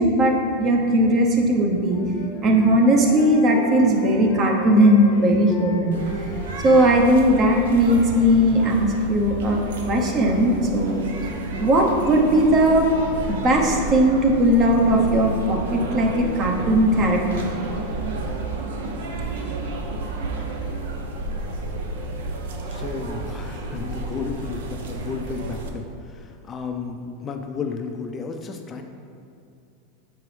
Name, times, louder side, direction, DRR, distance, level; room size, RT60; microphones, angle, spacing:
voice 1, 0.0-2.0 2.4-5.9 6.2-6.3 6.6-9.6 9.9-11.0 11.6-12.9 13.3-17.4, right 1 dB, 35° right, 1 dB, 0.9 m, -18 dB
Wind instrument woodwind instrument, 1.5-7.9, left 4 dB, 75° left, 0.7 m, -38 dB
sound 1, 5.9-25.7, right 2 dB, 85° right, 0.7 m, -31 dB
voice 2, 22.7-28.8, left 5 dB, 25° left, 4 dB, 0.4 m, -33 dB
6.8 x 4.6 x 3.4 m, 2.6 s
supercardioid pair, 125°, 0 cm